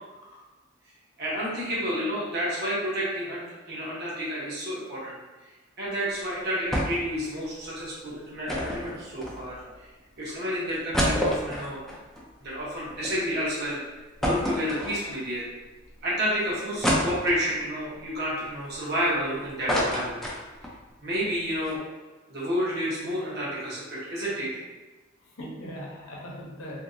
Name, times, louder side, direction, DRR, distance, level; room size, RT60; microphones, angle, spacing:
voice 1, 1.2-5.2 5.8-9.6 10.2-11.8 12.4-13.8 14.2-15.5 16.0-20.2 21.0-21.8 22.3-24.5, equal, 55° right, -7 dB, 1.0 m, -30 dB
sound 1, 6.7-7.1 7.4-7.5 8.5-9.7 10.3-10.4 10.7-13.1 13.5-13.6 14.2-15.3 15.9-16.0 16.8-17.7 18.2-19.2 19.4-20.8 21.1-21.2 21.5-21.7, equal, ahead, 0.4 m, -28 dB
voice 2, 25.2-26.8, equal, 80° left, -3 dB, 0.8 m, -40 dB
2.8 x 2.7 x 2.5 m, 1.2 s
head